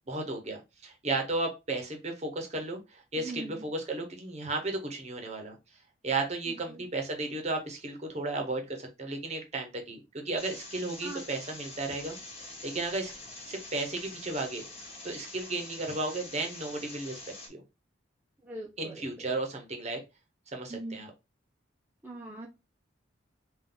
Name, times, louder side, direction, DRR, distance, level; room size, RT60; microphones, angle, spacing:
voice 1, 0.1-5.6 6.0-12.2 12.6-13.1 13.5-14.6 15.0-17.2 17.5-17.6 18.8-20.0 20.5-21.1, right 2 dB, 35° right, 3 dB, 1.0 m, -34 dB
voice 2, 3.2-3.6 6.5-6.8 11.0-11.2 18.4-19.3 20.7-21.0 22.0-22.5, right 2 dB, 10° right, -3 dB, 0.7 m, -41 dB
sound 1, 10.4-17.5, left 2 dB, 30° left, 1.3 m, -45 dB
3.8 x 2.5 x 3.9 m, 0.25 s
head